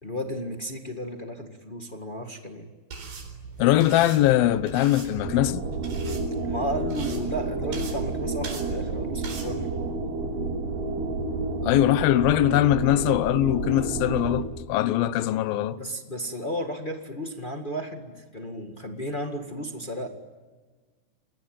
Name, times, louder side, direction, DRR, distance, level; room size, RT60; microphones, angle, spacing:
voice 1, 0.0-2.7 6.4-9.7 15.8-20.1, equal, 30° left, 0.9 m, -33 dB
sound 1, 2.9-9.5, right 5 dB, 85° right, 6.1 m, -40 dB
voice 2, 3.6-5.6 11.6-15.8, left 13 dB, 75° left, 2.7 m, -21 dB
sound 2, 5.1-14.4, right 3 dB, 60° right, 4.2 m, -30 dB
30.0 x 21.5 x 9.2 m
omnidirectional pair, 4.3 m